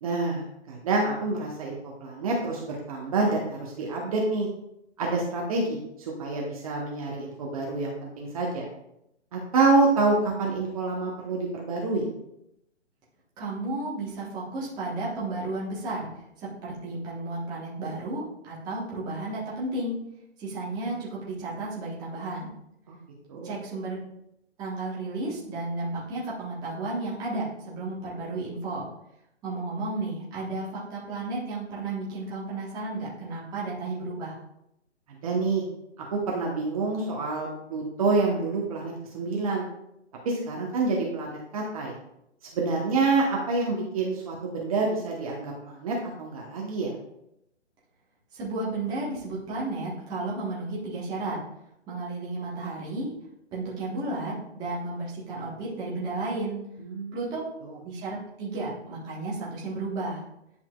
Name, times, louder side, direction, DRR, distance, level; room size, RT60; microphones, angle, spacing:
voice 1, 0.0-4.5 5.0-8.7 9.3-12.1 22.9-23.0 23.3-23.5 35.1-35.6 36.0-39.7 40.2-42.0 42.5-46.9 56.8-57.2 57.6-57.7, right 3 dB, 30° right, -2 dB, 1.0 m, -27 dB
voice 2, 13.4-16.1 16.4-20.0 20.4-22.5 23.4-24.0 24.6-28.9 29.4-34.4 48.3-51.4 51.9-53.1 53.5-56.6 57.1-57.4 57.7-60.2, right 2 dB, 10° right, -7 dB, 1.2 m, -33 dB
10.0 x 5.6 x 2.3 m, 0.82 s
hypercardioid pair, 155°, 35 cm